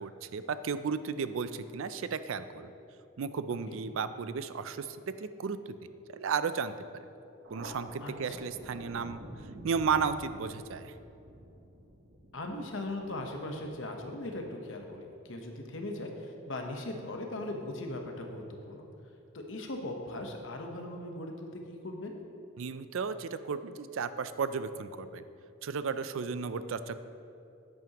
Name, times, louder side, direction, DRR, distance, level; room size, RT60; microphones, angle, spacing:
voice 1, 0.0-2.7 3.2-5.8 6.1-6.7 7.5-9.2 9.6-10.9 22.6-25.2 25.6-27.0, right 5 dB, 70° right, 12 dB, 0.4 m, -34 dB
Thunder, 7.4-14.5, right 1 dB, 55° right, 1.0 m, -49 dB
voice 2, 12.3-18.9 19.3-22.1, left 1 dB, 60° left, 3 dB, 1.0 m, -39 dB
10.5 x 9.2 x 3.0 m, 2.7 s
head